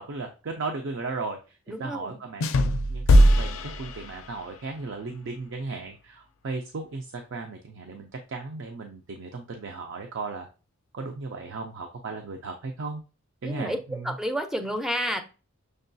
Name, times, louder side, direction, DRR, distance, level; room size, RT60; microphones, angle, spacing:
voice 1, 0.0-2.5 2.9-10.5 10.9-13.0 13.4-14.1, right 3 dB, 60° right, 3 dB, 0.5 m, -36 dB
voice 2, 1.7-2.2 13.4-15.2, equal, ahead, 6 dB, 0.4 m, -30 dB
sound 1, 2.4-4.6, equal, 75° left, 0.4 m, -20 dB
6.3 x 2.3 x 2.6 m, 0.33 s
head